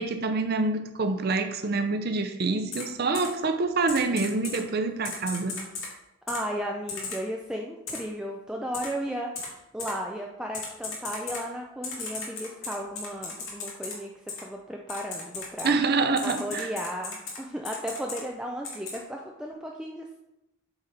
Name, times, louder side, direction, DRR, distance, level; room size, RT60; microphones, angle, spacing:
voice 1, 0.0-5.6 15.6-16.7, right 3 dB, 50° right, 7 dB, 0.6 m, -26 dB
Typing, 2.7-2.8 3.1-3.3 3.9-4.6 5.0-5.9 6.3-6.4 6.9-7.2 7.9-8.0 8.7-8.9 9.4-9.5 9.8-9.9 10.5-11.4 11.8-13.9 14.3-14.4 14.9-15.7 16.2-17.4 17.7-18.2 18.6-19.0, left 4 dB, 70° left, 2.0 m, -35 dB
voice 2, 6.3-14.1 14.4-15.7 16.2-20.2, equal, 5° right, 0 dB, 0.4 m, -35 dB
8.0 x 4.1 x 4.1 m, 0.90 s
head